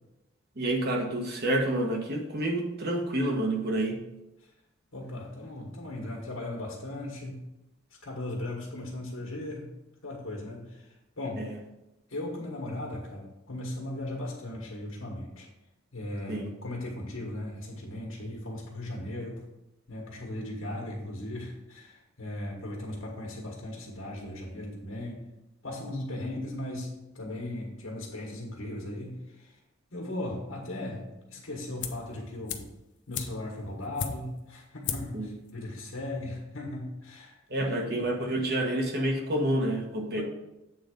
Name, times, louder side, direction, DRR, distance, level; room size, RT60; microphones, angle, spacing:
voice 1, 0.5-4.0 11.4-11.6 16.3-16.5 35.1-35.3 37.5-40.2, right 1 dB, 55° right, 1 dB, 1.3 m, -28 dB
voice 2, 4.9-7.4 8.0-9.7 10.0-11.5 12.1-15.5 15.9-19.4 19.9-25.2 25.6-29.6 29.9-32.7 33.1-38.1 40.2-40.3, left 1 dB, 85° left, -1 dB, 1.5 m, -37 dB
sound 1, 31.8-32.1 32.5-34.5 34.8-35.2 35.5-35.6, left 7 dB, 60° left, 0.7 m, -36 dB
8.0 x 3.9 x 5.2 m, 0.94 s
head